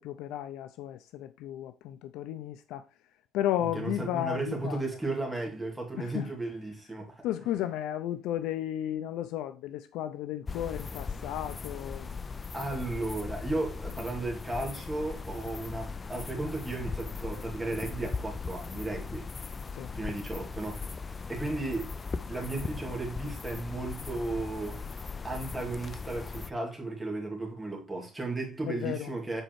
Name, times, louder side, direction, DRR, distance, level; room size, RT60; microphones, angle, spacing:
voice 1, 0.0-2.8 3.3-5.0 6.0-6.3 7.2-12.2 19.7-19.9 28.7-29.2, left 12 dB, 75° left, 0.5 m, -34 dB
voice 2, 3.7-7.2 12.5-19.3 19.9-22.0 22.3-24.8 25.2-29.4, right 2 dB, 10° right, 2.2 m, -35 dB
sound 1, 10.5-26.5, left 4 dB, 20° left, 0.3 m, -39 dB
8.0 x 4.3 x 4.5 m
cardioid pair, 160°, 0 cm